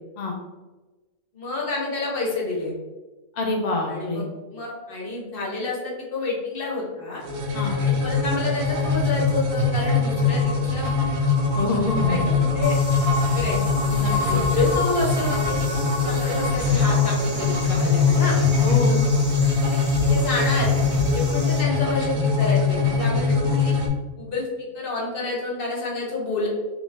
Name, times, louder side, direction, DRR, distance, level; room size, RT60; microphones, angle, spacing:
voice 1, 1.3-2.7 3.9-4.2 4.5-7.2 7.8-10.9 11.9-12.8 13.3-13.6 14.1-15.6 16.0-18.4 20.1-20.7 21.1-23.7 24.2-24.5 24.7-26.5, left 3 dB, 45° left, -3 dB, 1.0 m, -28 dB
voice 2, 3.4-4.2 7.5-7.7 11.5-12.3 13.9-14.4 18.6-19.0, left 2 dB, 75° left, 0 dB, 0.4 m, -26 dB
sound 1, 7.2-23.9, left 4 dB, 80° right, 1.2 m, -22 dB
sound 2, 12.6-21.6, right 1 dB, 10° right, 0.9 m, -36 dB
3.9 x 2.4 x 3.5 m, 1.2 s
omnidirectional pair, 1.6 m